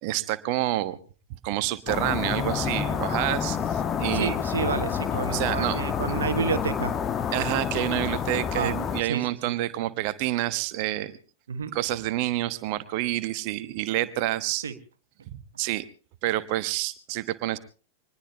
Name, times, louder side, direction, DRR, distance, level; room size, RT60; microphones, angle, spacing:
voice 1, 0.0-1.0 1.4-4.4 5.3-5.8 7.3-11.2 11.7-14.6 15.3-15.9 16.2-17.6, right 15 dB, 45° right, 13 dB, 1.2 m, -28 dB
sound 1, 1.9-9.0, left 7 dB, 25° left, 1.2 m, -28 dB
voice 2, 4.1-6.9 8.5-9.9 11.5-11.7 14.6-14.7, right 6 dB, 65° right, 9 dB, 1.5 m, -30 dB
24.5 x 20.5 x 2.9 m, 0.37 s
figure-of-eight pair, 90°, 0 cm